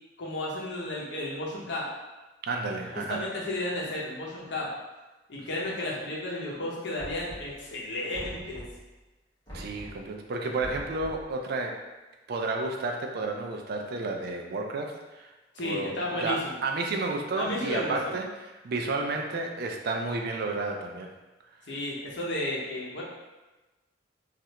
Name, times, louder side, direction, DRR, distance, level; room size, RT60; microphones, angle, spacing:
voice 1, 0.2-1.9 2.9-4.7 5.3-8.6 15.5-16.6 17.4-18.2 21.7-23.0, left 1 dB, 65° left, -4 dB, 0.8 m, -33 dB
voice 2, 2.4-3.2 9.5-11.8 12.3-15.3 15.6-18.3 18.6-21.1, right 3 dB, 55° right, 3 dB, 0.4 m, -31 dB
Knock, 7.0-7.7 8.1-8.9 9.5-10.1 10.6-11.3, equal, 25° left, 1.1 m, -43 dB
3.1 x 2.4 x 2.8 m, 1.1 s
head